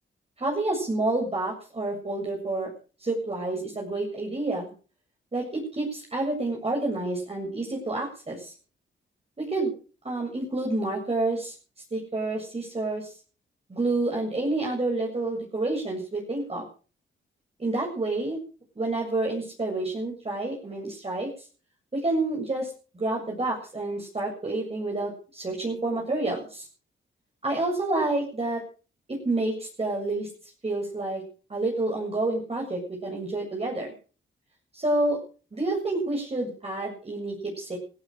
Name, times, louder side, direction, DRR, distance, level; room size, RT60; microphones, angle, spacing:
voice 1, 0.4-2.7 3.0-4.7 5.3-8.5 9.4-9.7 10.0-11.5 11.9-13.1 13.7-16.6 17.6-18.4 18.8-21.3 21.9-26.7 27.4-28.6 29.1-30.3 30.6-31.2 31.5-33.9 34.7-35.2 35.5-37.8, right 2 dB, 30° right, -1 dB, 7.5 m, -29 dB
17.5 x 15.5 x 5.1 m, 0.39 s
cardioid pair, 75°, 20 cm